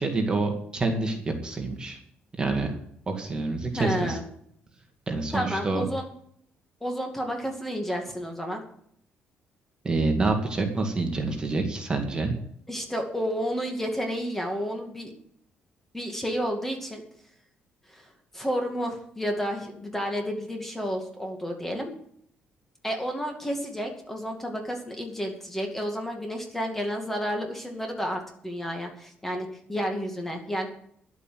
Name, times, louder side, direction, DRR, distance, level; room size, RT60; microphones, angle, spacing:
voice 1, 0.0-2.0 2.4-2.7 3.1-4.2 5.1-5.8 9.8-12.3, right 3 dB, 25° right, 3 dB, 2.2 m, -27 dB
voice 2, 3.7-4.2 5.3-6.1 6.8-8.6 12.7-15.1 15.9-17.0 17.9-18.1 18.3-21.9 22.8-30.7, equal, 10° left, 3 dB, 2.3 m, -31 dB
11.0 x 8.5 x 7.7 m, 0.67 s
cardioid pair, 135°, 4 cm